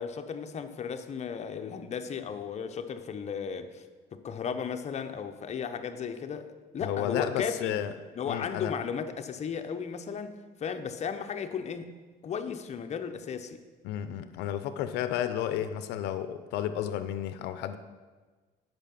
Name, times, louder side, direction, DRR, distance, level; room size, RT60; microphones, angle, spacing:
voice 1, 0.0-3.8 4.1-7.8 8.1-11.9 12.2-13.6, left 6 dB, 40° left, 8 dB, 0.7 m, -35 dB
voice 2, 6.8-7.9 8.3-8.8 13.8-17.8, left 10 dB, 90° left, 11 dB, 0.5 m, -32 dB
8.9 x 5.6 x 5.9 m, 1.4 s
cardioid pair, 110°, 17 cm